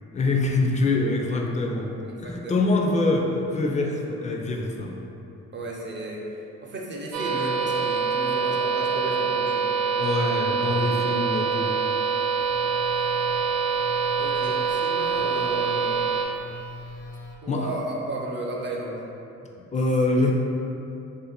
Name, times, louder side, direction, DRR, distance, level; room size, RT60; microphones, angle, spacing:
voice 1, 0.1-1.9 2.2-5.0 10.0-11.7 17.5-17.7 19.7-20.3, left 2 dB, 25° left, 1 dB, 0.4 m, -24 dB
voice 2, 2.2-2.6 5.5-6.2 6.6-9.7 14.2-16.0 17.4-19.0, right 1 dB, 40° right, -2 dB, 0.6 m, -33 dB
sound 1, 7.1-16.2, right 5 dB, 85° right, 0.6 m, -25 dB
Telephone, 12.4-17.4, left 3 dB, 80° left, 0.6 m, -42 dB
2.6 x 2.4 x 4.2 m, 2.9 s
cardioid pair, 90°, 30 cm